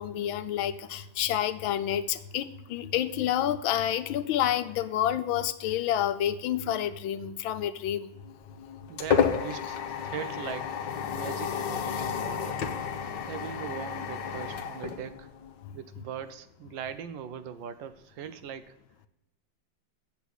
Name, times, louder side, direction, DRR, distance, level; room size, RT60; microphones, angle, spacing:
voice 1, 0.0-8.1, left 11 dB, 85° left, 11 dB, 1.4 m, -29 dB
sound 1, 8.3-15.7, left 7 dB, 65° left, 1.5 m, -31 dB
voice 2, 8.9-10.8 11.1-12.6 13.2-15.3 15.7-18.8, right 8 dB, 75° right, 12 dB, 1.3 m, -40 dB
8.2 x 7.0 x 6.2 m, 0.92 s
omnidirectional pair, 2.2 m